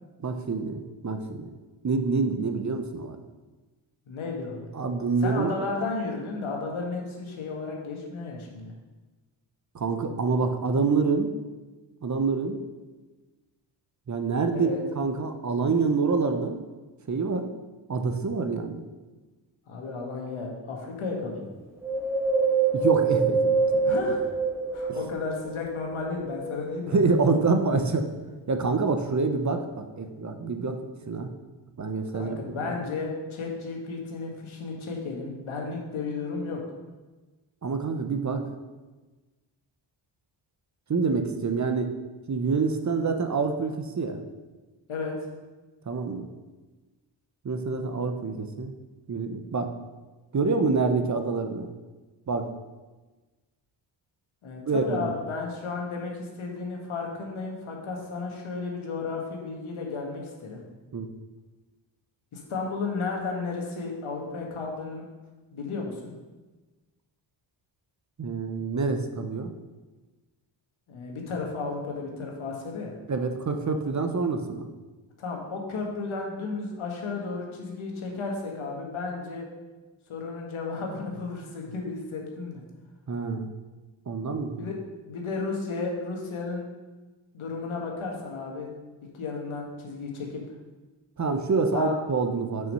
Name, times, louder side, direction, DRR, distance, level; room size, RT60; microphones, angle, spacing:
voice 1, 0.2-1.5 1.8-3.2 4.7-5.5 9.7-11.3 12.0-12.6 14.1-14.7 15.0-16.6 17.1-17.5 17.9-18.9 22.7-23.9 24.9-25.0 26.9-28.1 28.5-30.8 31.1-31.3 31.8-32.7 37.6-38.4 40.9-42.0 42.3-44.2 45.9-46.3 47.4-48.7 49.1-49.7 50.3-51.7 52.3-52.5 54.7-55.1 60.9-61.1 68.2-69.5 73.1-74.7 83.1-83.5 84.1-84.7 91.2-92.7, right 4 dB, 35° right, 6 dB, 0.8 m, -26 dB
voice 2, 4.1-4.7 5.2-8.7 14.5-14.8 19.7-21.5 23.8-24.2 24.7-27.0 32.1-36.6 44.9-45.1 54.4-60.6 62.3-65.0 65.5-66.1 70.9-72.9 75.2-79.4 80.1-82.6 84.6-84.7 85.1-86.6 87.3-88.7 89.1-90.4 91.7-91.9, left 4 dB, 80° left, 0 dB, 1.8 m, -33 dB
Wind, 21.8-25.4 25.9-27.2 27.7-27.8, right 4 dB, 5° right, 1.4 m, -25 dB
6.2 x 5.7 x 5.5 m, 1.2 s
cardioid pair, 75°, 48 cm